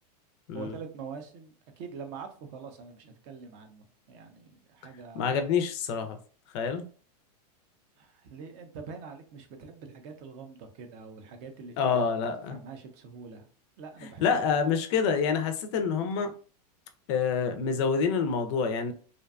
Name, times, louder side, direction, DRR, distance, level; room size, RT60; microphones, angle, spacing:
voice 1, 0.5-5.3 8.0-12.2 12.5-13.5 13.8-14.6, right 5 dB, 40° right, 0.4 m, -44 dB
voice 2, 5.1-6.2 6.5-6.8 11.8-12.6 14.2-16.3 17.1-18.9, left 6 dB, 45° left, 0.4 m, -27 dB
2.5 x 2.2 x 2.3 m
supercardioid pair, 145°, 21 cm